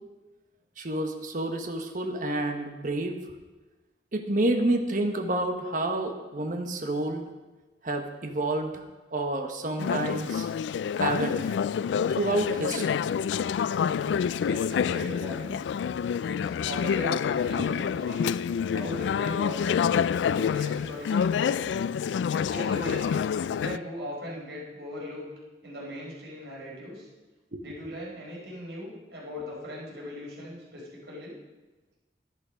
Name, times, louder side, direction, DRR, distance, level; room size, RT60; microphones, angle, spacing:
voice 1, 0.8-3.2 4.1-7.3 7.8-8.9 9.1-10.5 11.0-11.5 12.1-13.0 14.1-14.2 18.0-18.1 27.5-27.6, right 1 dB, 50° right, 4 dB, 1.2 m, -29 dB
Conversation / Chatter, 9.8-23.8, left 7 dB, 90° left, 0.3 m, -27 dB
voice 2, 14.4-15.5 16.2-18.3 18.7-20.0 20.3-21.7 22.3-23.1 23.5-25.3 25.6-27.1 27.6-31.3, equal, 75° right, -4 dB, 4.6 m, -39 dB
11.0 x 11.0 x 5.2 m, 1.2 s
head